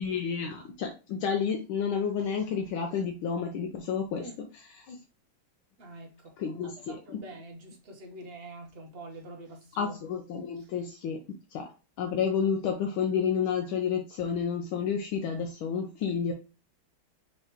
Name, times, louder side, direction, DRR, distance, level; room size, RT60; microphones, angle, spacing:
voice 1, 0.0-4.3 4.9-5.0 6.4-7.0 9.8-11.7 12.0-16.3, left 6 dB, 80° left, 1.5 m, -30 dB
voice 2, 5.8-10.1 10.6-10.7, right 1 dB, 45° right, 0.8 m, -46 dB
5.7 x 3.2 x 2.9 m
omnidirectional pair, 2.3 m